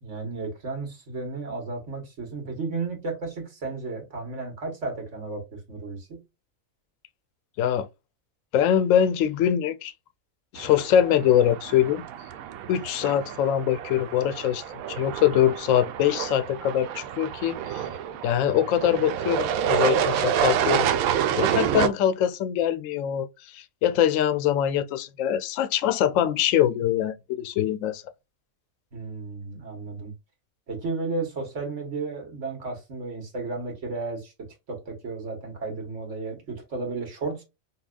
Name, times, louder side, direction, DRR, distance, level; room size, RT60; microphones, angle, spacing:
voice 1, 0.0-6.2 28.9-30.1 30.7-34.3 34.7-37.4, right 3 dB, 60° right, 1.7 m, -33 dB
voice 2, 8.5-9.9 10.5-12.0 12.7-14.6 14.9-17.9 18.2-20.9 21.4-28.0, left 10 dB, 75° left, 0.9 m, -23 dB
sound 1, 10.6-21.9, right 9 dB, 85° right, 1.0 m, -28 dB
5.6 x 2.2 x 2.4 m
omnidirectional pair, 1.4 m